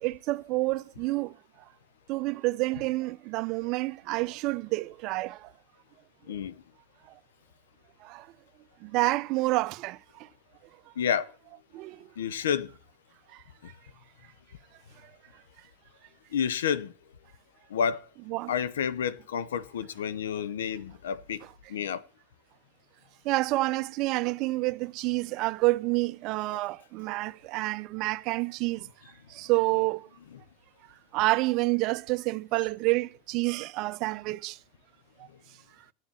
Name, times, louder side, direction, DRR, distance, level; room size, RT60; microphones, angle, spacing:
voice 1, 0.0-1.3 2.1-5.5 8.0-8.3 8.8-10.3 11.7-12.1 13.3-13.4 18.3-18.5 23.2-28.9 29.3-30.1 31.1-34.6 35.2-35.3, right 21 dB, 55° right, 0.4 m, -28 dB
voice 2, 6.3-6.6 11.0-11.3 12.2-12.7 13.6-13.7 16.3-16.9 17.7-18.1 18.5-21.4 21.7-22.0 26.5-26.6 29.7-29.9 30.3-30.4, left 7 dB, 85° left, 0.7 m, -30 dB
9.7 x 7.3 x 7.2 m
hypercardioid pair, 90°, 0 cm